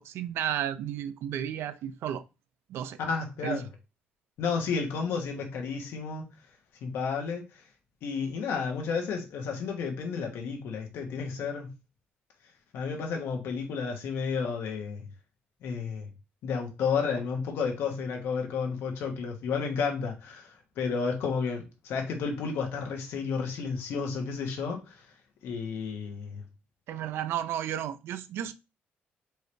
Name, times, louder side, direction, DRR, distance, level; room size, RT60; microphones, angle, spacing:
voice 1, 0.0-2.2 2.7-3.0 3.4-3.7 26.9-28.5, right 10 dB, 75° right, 0.4 m, -33 dB
voice 2, 3.0-3.6 4.4-6.3 6.8-7.4 8.0-11.7 12.7-15.1 15.6-16.1 16.4-24.9 25.4-26.4, left 5 dB, 75° left, 1.3 m, -32 dB
4.5 x 3.1 x 3.3 m
cardioid pair, 140°, 4 cm